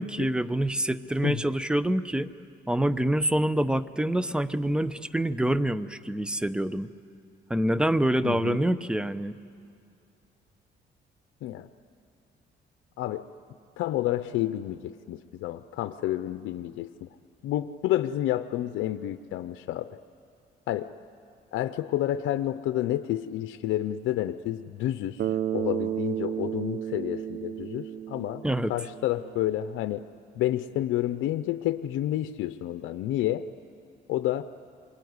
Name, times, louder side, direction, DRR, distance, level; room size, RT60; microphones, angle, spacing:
voice 1, 0.0-2.3 2.7-6.9 7.5-9.4 28.4-28.7, right 1 dB, 5° right, 14 dB, 0.8 m, -26 dB
voice 2, 8.2-8.6 11.4-11.7 13.0-13.2 13.8-17.1 17.4-19.9 20.7-20.9 21.5-28.4 28.7-30.0 30.4-33.4 34.1-34.4, left 13 dB, 90° left, 10 dB, 0.6 m, -29 dB
Bass guitar, 25.2-29.4, right 10 dB, 65° right, 0.7 m, -32 dB
27.0 x 23.0 x 9.6 m, 2.4 s
cardioid pair, 90°, 20 cm